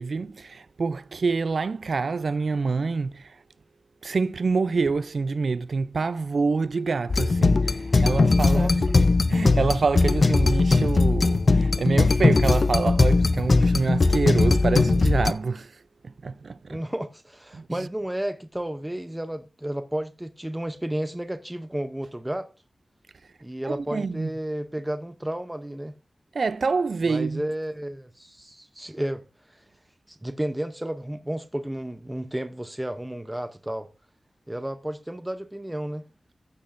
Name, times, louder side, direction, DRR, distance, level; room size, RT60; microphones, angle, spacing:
voice 1, 0.0-3.4 4.0-8.8 9.3-15.7 16.0-16.8 17.5-17.9 23.6-24.3 26.3-27.4, right 4 dB, 75° right, 0.3 m, -26 dB
sound 1, 7.1-15.3, left 3 dB, 55° left, 0.5 m, -20 dB
voice 2, 16.7-22.5 23.4-25.9 27.1-29.6 30.1-33.9 34.5-36.0, right 1 dB, 10° right, 0.6 m, -32 dB
15.0 x 6.3 x 2.5 m
wide cardioid pair, 90°, 0 cm